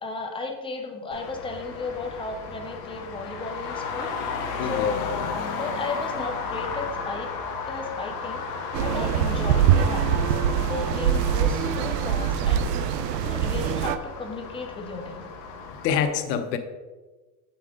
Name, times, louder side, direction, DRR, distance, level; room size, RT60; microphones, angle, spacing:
voice 1, 0.0-4.1 4.6-5.0 5.6-7.3 7.7-8.4 8.8-10.4 10.6-12.8 13.2-15.3, left 3 dB, 10° left, 3 dB, 0.6 m, -34 dB
Traffic noise roadway noise, 1.1-16.1, left 5 dB, 40° left, 1.0 m, -34 dB
voice 2, 4.6-4.9 15.8-16.6, left 7 dB, 80° left, 8 dB, 1.0 m, -25 dB
sound 1, 8.7-14.0, right 9 dB, 90° right, 0.6 m, -23 dB
7.4 x 5.8 x 3.7 m, 1.2 s
supercardioid pair, 140°, 48 cm